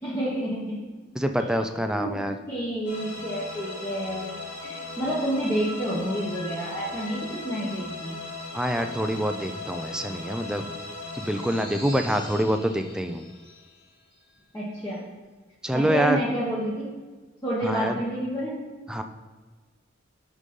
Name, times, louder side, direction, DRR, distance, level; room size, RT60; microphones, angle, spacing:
voice 1, 0.0-0.7 1.4-1.6 1.9-2.2 2.5-8.2 14.5-15.0 15.7-16.9 17.4-18.5, right 1 dB, 15° left, -9 dB, 1.3 m, -29 dB
voice 2, 1.2-2.4 8.5-10.6 11.1-13.2 15.6-16.2 17.6-18.0 18.9-19.0, equal, 5° right, 6 dB, 0.3 m, -26 dB
sound 1, 2.8-14.3, left 3 dB, 60° left, 1.8 m, -38 dB
6.3 x 3.9 x 5.3 m, 1.3 s
head